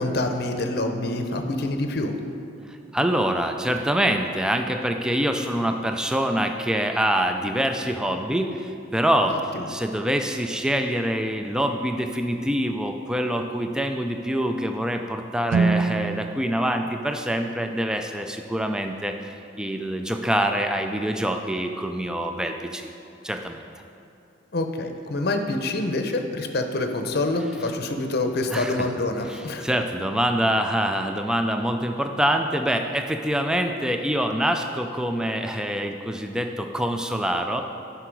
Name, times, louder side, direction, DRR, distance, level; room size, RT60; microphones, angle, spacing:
voice 1, 0.0-2.2 9.3-9.7 24.5-29.7, left 2 dB, 55° left, 5 dB, 0.7 m, -26 dB
voice 2, 2.7-9.4 9.7-22.9 23.2-23.6 28.5-28.8 29.3-37.6, equal, 5° right, 5 dB, 0.3 m, -25 dB
Guitar, 15.5-18.1, right 4 dB, 80° right, 0.4 m, -27 dB
10.0 x 5.7 x 4.6 m, 2.6 s
head